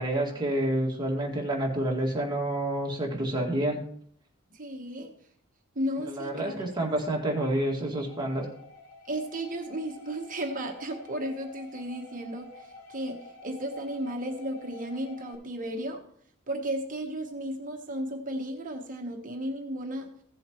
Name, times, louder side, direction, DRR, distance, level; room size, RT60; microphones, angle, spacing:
voice 1, 0.0-3.8 6.1-8.5, right 1 dB, 20° right, -1 dB, 2.1 m, -28 dB
voice 2, 4.5-5.1 5.7-6.5 9.1-12.5 12.9-16.0 16.5-20.1, right 1 dB, 40° right, 3 dB, 1.2 m, -34 dB
sound 1, 8.0-15.3, left 2 dB, 90° left, 3.3 m, -49 dB
16.0 x 7.7 x 3.1 m, 0.63 s
head